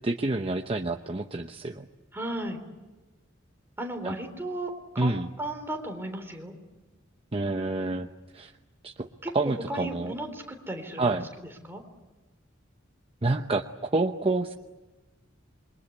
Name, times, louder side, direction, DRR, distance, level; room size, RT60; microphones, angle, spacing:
voice 1, 0.0-1.9 4.0-4.1 5.0-5.3 7.3-8.5 8.8-9.1 9.3-10.1 11.0-11.3 13.2-14.5, right 2 dB, 30° right, 5 dB, 0.9 m, -28 dB
voice 2, 2.1-2.6 3.8-6.5 9.2-11.2 11.6-11.8, right 1 dB, 10° right, 4 dB, 3.8 m, -35 dB
27.5 x 23.0 x 8.5 m, 1.2 s
head